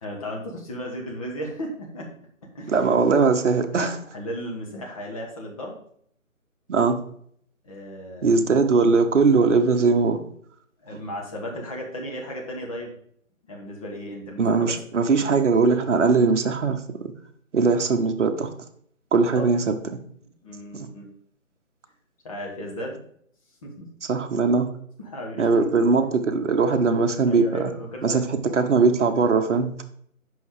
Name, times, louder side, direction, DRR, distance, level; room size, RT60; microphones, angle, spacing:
voice 1, 0.0-2.1 2.4-2.9 3.7-5.8 7.6-8.3 10.8-12.9 13.5-14.8 19.3-19.5 20.4-21.1 22.2-23.0 23.6-23.8 25.0-25.7 27.2-28.2, equal, 25° left, 0 dB, 1.3 m, -35 dB
voice 2, 2.7-4.0 6.7-7.0 8.2-10.2 10.9-11.0 14.4-17.1 17.5-18.5 19.1-19.7 24.1-24.7 25.4-27.7 28.0-29.8, right 4 dB, 60° right, 6 dB, 1.0 m, -20 dB
5.6 x 5.4 x 4.7 m, 0.65 s
figure-of-eight pair, 155°, 42 cm